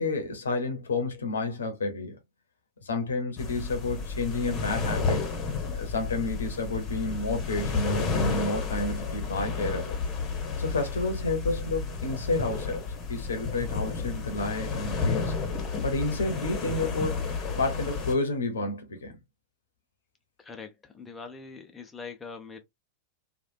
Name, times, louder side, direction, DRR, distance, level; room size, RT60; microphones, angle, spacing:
voice 1, 0.0-2.2 2.8-5.3 5.7-10.0 10.6-12.8 13.1-15.3 15.8-17.2 17.5-19.1, left 2 dB, 70° left, 0.9 m, -30 dB
sound 1, 3.4-18.1, left 4 dB, 30° left, 1.0 m, -31 dB
voice 2, 20.4-22.6, left 4 dB, 15° left, 0.6 m, -43 dB
3.2 x 2.4 x 2.6 m
figure-of-eight pair, 90°, 0 cm